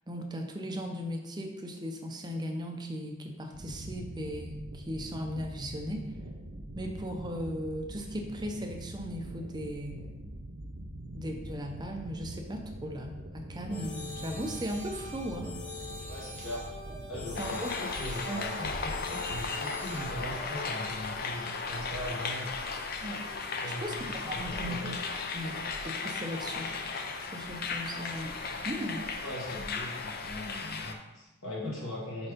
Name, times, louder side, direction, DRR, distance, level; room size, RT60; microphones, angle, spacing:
voice 1, 0.1-6.0 6.7-10.1 11.1-15.5 17.4-17.7 18.3-18.4 23.0-23.3 23.8-25.0 25.3-26.7 27.3-28.4 28.6-29.0 31.6-31.7, equal, 20° right, 3 dB, 0.5 m, -37 dB
sound 1, 3.5-17.5, right 1 dB, 65° right, 0.9 m, -44 dB
sound 2, 13.7-20.5, left 1 dB, 5° left, 1.0 m, -43 dB
voice 2, 16.1-16.7 17.1-22.5 23.6-24.0 24.3-25.0 29.2-32.3, left 1 dB, 60° left, -5 dB, 1.6 m, -40 dB
sound 3, 17.3-30.9, left 4 dB, 45° left, 0.5 m, -36 dB
4.8 x 4.3 x 5.1 m, 1.0 s
head